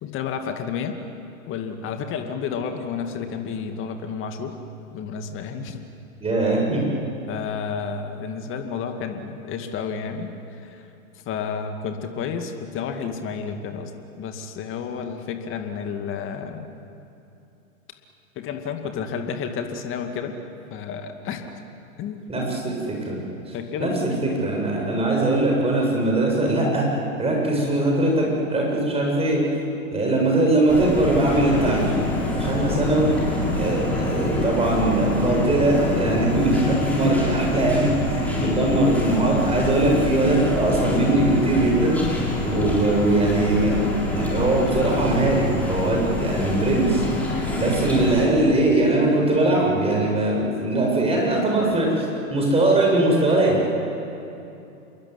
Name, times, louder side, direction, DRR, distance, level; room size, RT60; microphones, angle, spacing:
voice 1, 0.0-1.0 1.5-4.5 4.9-5.8 7.3-10.8 11.3-13.9 14.2-16.7 18.4-20.3 20.7-21.4 22.0-22.3 23.5-24.0 38.4-38.7 47.3-47.7, left 6 dB, 30° left, 5 dB, 2.3 m, -31 dB
voice 2, 6.2-6.8 22.3-23.2 23.8-26.9 27.2-29.4 29.9-31.9 32.3-33.1 33.5-42.0 42.4-47.0 47.6-53.6, right 2 dB, 15° right, -1 dB, 7.8 m, -21 dB
sound 1, 30.7-48.3, left 2 dB, 5° left, 7.0 m, -26 dB
27.5 x 22.0 x 9.7 m, 2.8 s
hypercardioid pair, 115°, 43 cm